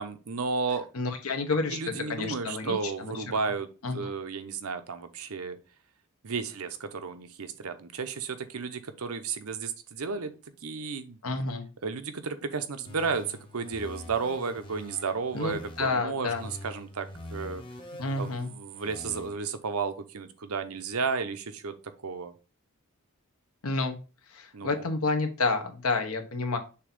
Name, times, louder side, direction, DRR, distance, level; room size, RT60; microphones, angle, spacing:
voice 1, 0.0-0.9 1.7-3.7 3.9-5.6 6.2-10.3 10.6-11.2 11.8-17.6 18.2-21.7 22.0-22.3 24.5-24.8, right 5 dB, 80° right, 9 dB, 0.8 m, -33 dB
voice 2, 0.9-1.8 2.1-3.2 3.8-4.1 11.2-11.6 15.3-16.5 18.0-18.5 23.6-24.0 24.3-26.6, left 3 dB, 75° left, 6 dB, 1.2 m, -29 dB
sound 1, 12.9-15.9 16.3-19.3, left 1 dB, 25° left, 1.1 m, -45 dB
6.7 x 2.9 x 5.3 m, 0.33 s
head